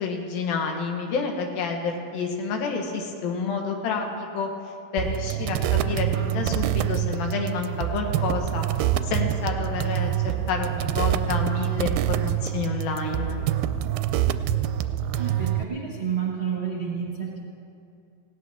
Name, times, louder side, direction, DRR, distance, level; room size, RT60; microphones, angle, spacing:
voice 1, 0.0-4.5 4.9-13.4, left 4 dB, 90° left, 2 dB, 3.2 m, -29 dB
sound 1, 5.0-15.6, right 11 dB, 85° right, 2.3 m, -26 dB
voice 2, 15.1-17.4, right 7 dB, 35° right, -4 dB, 1.0 m, -30 dB
19.0 x 17.0 x 3.6 m, 2.5 s
omnidirectional pair, 4.0 m